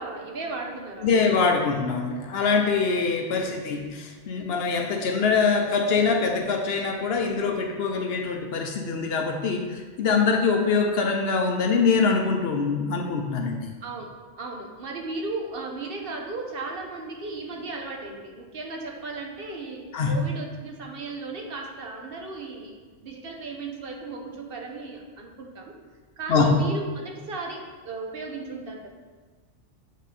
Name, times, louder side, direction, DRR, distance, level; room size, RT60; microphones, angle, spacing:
voice 1, 0.0-1.1 13.8-14.1 14.4-22.8 23.0-25.7 26.2-28.9, right 3 dB, 55° right, 1 dB, 0.9 m, -35 dB
voice 2, 1.0-13.7 19.9-20.2 26.3-26.5, left 4 dB, 65° left, 3 dB, 0.8 m, -24 dB
8.3 x 3.1 x 4.1 m, 1.4 s
omnidirectional pair, 1.2 m